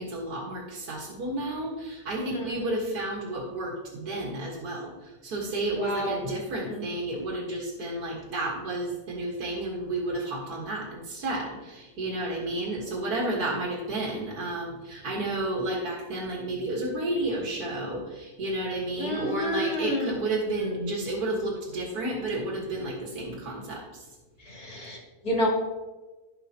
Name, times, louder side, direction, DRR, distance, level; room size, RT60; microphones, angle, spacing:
voice 1, 0.0-23.8, right 2 dB, 80° right, -3 dB, 2.1 m, -31 dB
voice 2, 2.1-2.9 5.7-6.2 6.5-6.9 19.0-20.1 20.6-21.1 24.4-25.5, left 1 dB, 80° left, -3 dB, 3.3 m, -31 dB
15.5 x 5.4 x 2.9 m, 1.2 s
omnidirectional pair, 1.6 m